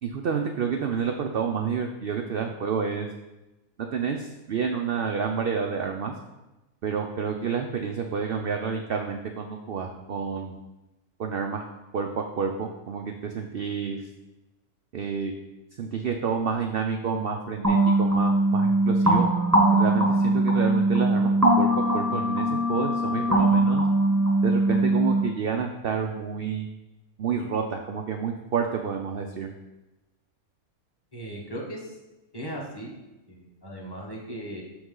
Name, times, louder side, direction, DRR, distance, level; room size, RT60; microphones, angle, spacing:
voice 1, 0.0-3.1 3.9-6.1 6.8-10.6 11.2-11.7 11.9-14.0 14.9-15.3 15.8-19.3 19.7-23.8 24.4-26.7 27.2-29.5, right 6 dB, 75° right, 4 dB, 0.5 m, -29 dB
sound 1, 17.6-25.2, right 1 dB, 20° right, 0.5 m, -21 dB
voice 2, 31.1-31.9 32.3-32.9 33.3-34.6, right 1 dB, 15° left, -3 dB, 1.2 m, -37 dB
6.3 x 5.9 x 3.8 m, 1.0 s
omnidirectional pair, 1.6 m